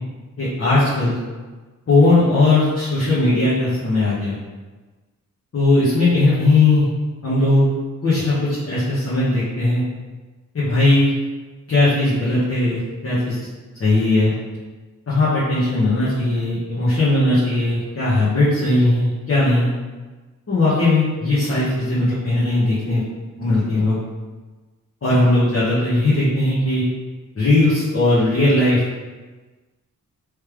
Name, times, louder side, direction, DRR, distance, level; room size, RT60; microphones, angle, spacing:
voice 1, 0.4-1.2 1.9-4.3 5.5-6.9 7.2-7.6 8.0-9.8 10.5-11.1 11.7-13.4 13.8-14.3 15.1-19.7 20.5-23.0 23.4-24.0 25.0-26.8 27.3-28.8, left 2 dB, 45° left, -11 dB, 1.2 m, -18 dB
3.3 x 3.2 x 3.4 m, 1.3 s
wide cardioid pair, 105°, 32 cm